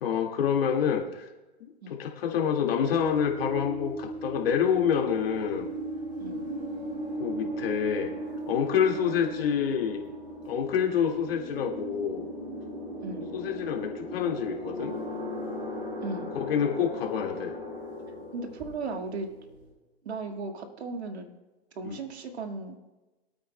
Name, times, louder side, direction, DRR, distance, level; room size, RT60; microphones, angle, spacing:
voice 1, 0.0-1.3 1.6-5.7 7.2-8.1 8.5-10.0 10.5-12.3 13.3-15.0 16.3-17.5 21.8-22.0, left 8 dB, 65° left, 1 dB, 2.0 m, -27 dB
sound 1, 2.8-19.7, right 1 dB, 15° right, 2.8 m, -37 dB
voice 2, 18.3-19.3 20.0-21.3 21.8-22.8, right 3 dB, 90° right, 5 dB, 1.8 m, -36 dB
22.5 x 8.7 x 2.2 m, 1.1 s
hypercardioid pair, 145°, 32 cm